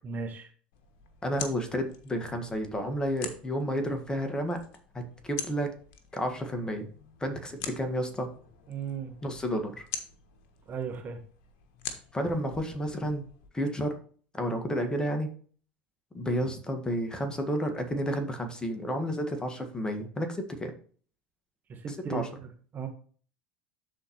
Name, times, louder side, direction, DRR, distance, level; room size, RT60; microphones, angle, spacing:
voice 1, 0.0-0.5 8.7-9.1 10.7-11.2 21.7-22.3 22.7-22.9, right 6 dB, 35° right, 5 dB, 1.3 m, -35 dB
sound 1, 0.7-13.5, left 7 dB, 55° left, 1.3 m, -45 dB
voice 2, 1.2-4.6 4.9-5.7 6.1-6.9 7.2-8.3 9.2-9.9 12.1-13.2 13.5-14.0 14.3-15.3 16.1-20.7 21.9-22.3, equal, 15° left, 5 dB, 1.7 m, -31 dB
12.5 x 4.2 x 3.1 m, 0.43 s
figure-of-eight pair, 75°, 5 cm